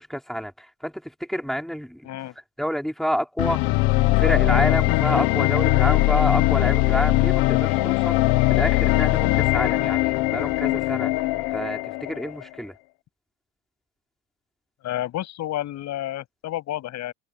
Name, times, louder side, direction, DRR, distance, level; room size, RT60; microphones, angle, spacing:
voice 1, 0.0-2.1 2.6-3.7 4.2-11.1 11.5-12.7, equal, ahead, 3.9 m, -29 dB
sound 1, 3.4-12.4, left 20 dB, 75° left, 1.0 m, -21 dB
voice 2, 14.8-17.1, left 13 dB, 50° left, 7.4 m, -30 dB
cardioid pair, 165°, 36 cm